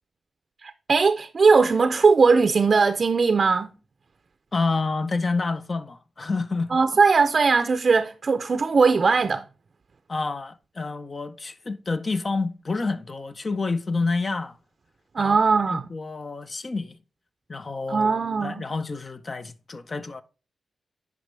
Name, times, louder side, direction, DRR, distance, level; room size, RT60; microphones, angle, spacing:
voice 1, 0.6-3.7 6.7-9.4 15.1-15.9 17.9-18.6, right 4 dB, 50° right, 0.5 m, -19 dB
voice 2, 4.5-6.7 10.1-14.6 15.2-15.4 15.7-17.0 17.5-18.1 18.4-20.2, left 3 dB, 40° left, 0.6 m, -28 dB
9.4 x 5.2 x 3.3 m
cardioid pair, 65°, 0 cm